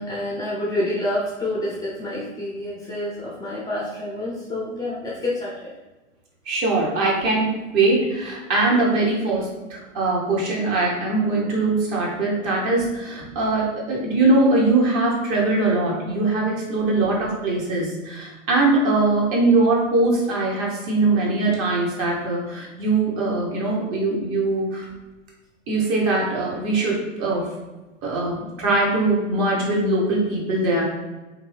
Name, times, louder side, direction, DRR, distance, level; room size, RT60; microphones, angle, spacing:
voice 1, 0.0-5.7, left 1 dB, 10° left, -7 dB, 0.6 m, -28 dB
voice 2, 6.5-24.9 25.7-27.5 28.0-30.8, right 2 dB, 35° right, -2 dB, 1.0 m, -21 dB
2.6 x 2.6 x 3.2 m, 1.1 s
hypercardioid pair, 105°, 38 cm